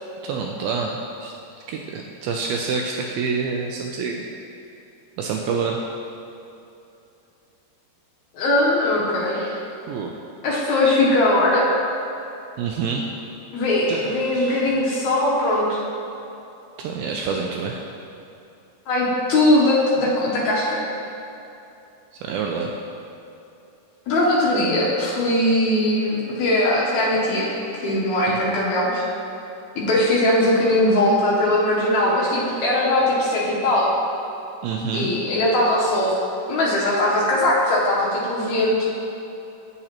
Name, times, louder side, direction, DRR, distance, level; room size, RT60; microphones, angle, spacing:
voice 1, 0.2-1.3 1.7-4.3 5.2-5.8 9.3-10.1 12.6-13.1 13.9-14.6 16.8-17.8 22.2-22.7 28.3-28.6 34.6-35.1, right 5 dB, 85° right, 1 dB, 2.2 m, -27 dB
voice 2, 8.3-9.4 10.4-11.7 13.5-15.8 18.9-20.8 24.1-29.1 29.8-33.9 34.9-36.2 36.5-38.9, left 1 dB, 75° left, -6 dB, 1.8 m, -20 dB
8.8 x 8.0 x 2.9 m, 2.8 s
omnidirectional pair, 4.7 m